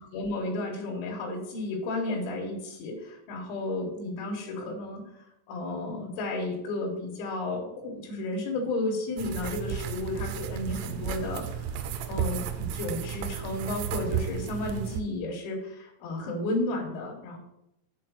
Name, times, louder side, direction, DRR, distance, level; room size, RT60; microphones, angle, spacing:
voice 1, 0.0-17.4, left 2 dB, 75° left, -1 dB, 3.5 m, -33 dB
sound 1, 9.2-15.0, right 8 dB, 85° right, 3.0 m, -33 dB
7.3 x 4.3 x 6.3 m, 0.86 s
omnidirectional pair, 5.6 m